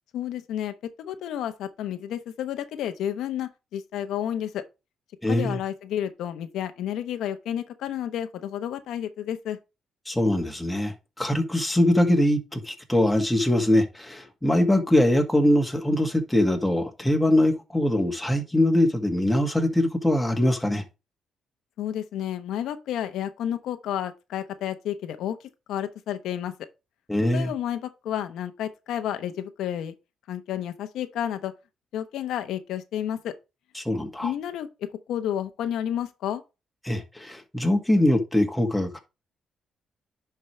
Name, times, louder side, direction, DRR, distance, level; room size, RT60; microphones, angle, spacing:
voice 1, 0.1-4.6 5.3-9.6 21.8-25.4 25.7-26.5 27.3-29.9 30.3-31.5 31.9-33.3 34.2-34.7 35.1-36.4, left 10 dB, 80° left, 0.9 m, -31 dB
voice 2, 5.2-5.6 10.1-20.8 27.1-27.5 33.8-34.3 36.8-39.0, left 1 dB, 5° left, 1.9 m, -22 dB
10.5 x 4.8 x 3.2 m
cardioid pair, 90°, 0 cm